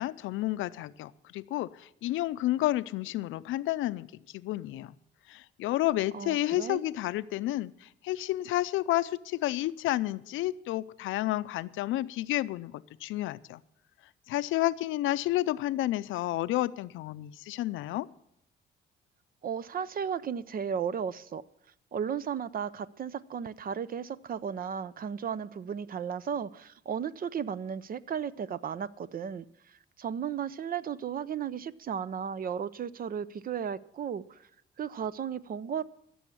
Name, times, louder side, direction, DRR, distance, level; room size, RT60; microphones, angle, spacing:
voice 1, 0.0-4.1 4.3-4.9 5.3-13.6 14.3-18.1, left 15 dB, 85° left, 0.5 m, -31 dB
voice 2, 6.1-6.8 19.4-21.4 21.9-34.5 34.8-35.8, right 7 dB, 45° right, 0.6 m, -35 dB
14.5 x 7.1 x 8.6 m
cardioid pair, 90°, 20 cm